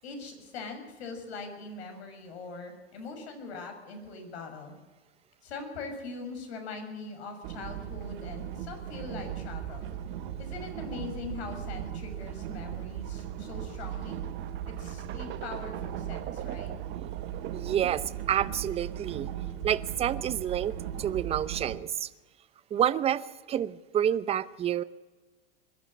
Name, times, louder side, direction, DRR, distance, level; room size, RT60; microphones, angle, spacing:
voice 1, 0.0-4.7 5.4-9.9 10.4-14.2 14.7-16.7, left 4 dB, 75° left, 5 dB, 6.5 m, -42 dB
sound 1, 7.4-21.8, right 10 dB, 60° right, 2.5 m, -38 dB
sound 2, 11.1-18.2, right 12 dB, 35° right, 1.3 m, -44 dB
voice 2, 17.5-19.3 19.6-22.1 22.7-24.8, right 10 dB, 20° right, 15 dB, 0.7 m, -29 dB
22.0 x 12.0 x 10.0 m, 1.2 s
hypercardioid pair, 130°, 33 cm